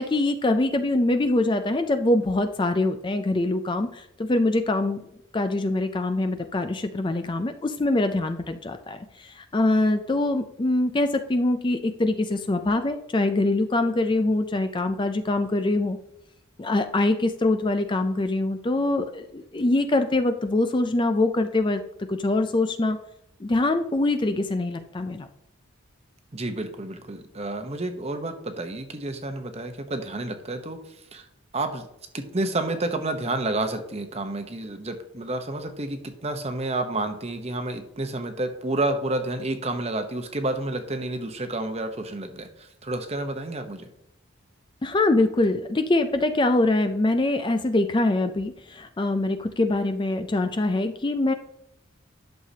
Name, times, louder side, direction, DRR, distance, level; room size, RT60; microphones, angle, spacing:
voice 1, 0.0-5.0 5.3-16.0 16.6-21.8 22.1-23.0 23.4-25.3 44.8-51.3, left 2 dB, 25° left, 8 dB, 0.4 m, -24 dB
voice 2, 26.3-30.8 31.1-31.2 31.5-31.9 32.1-42.5 42.8-43.9, right 2 dB, 30° right, 7 dB, 0.9 m, -30 dB
11.5 x 6.6 x 2.8 m, 0.78 s
head